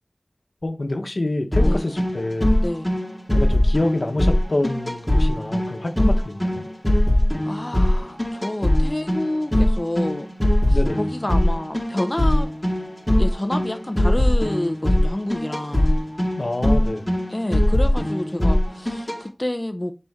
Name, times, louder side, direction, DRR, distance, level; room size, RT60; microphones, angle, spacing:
voice 1, 0.6-2.6 3.3-6.6 10.7-11.0 16.4-17.2, left 2 dB, 80° left, 1.1 m, -27 dB
sound 1, 1.5-19.2, left 1 dB, 20° left, 2.2 m, -21 dB
voice 2, 2.6-2.9 7.4-10.3 10.7-12.5 13.2-15.9 17.3-20.0, left 1 dB, 35° left, 0.7 m, -28 dB
6.9 x 4.4 x 3.6 m
wide cardioid pair, 45°, 0 cm